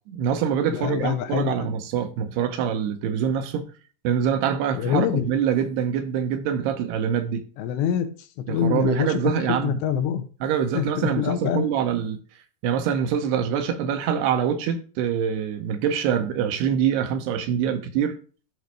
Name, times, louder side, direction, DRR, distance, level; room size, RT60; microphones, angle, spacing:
voice 1, 0.1-3.7 4.0-7.4 8.5-9.7 10.4-12.2 12.6-18.2, right 8 dB, 75° right, 2.8 m, -25 dB
voice 2, 0.6-1.7 4.7-5.3 7.6-8.1 8.5-9.2 9.5-10.2 10.7-11.7, left 9 dB, 80° left, 3.0 m, -25 dB
12.0 x 4.1 x 4.7 m
omnidirectional pair, 5.1 m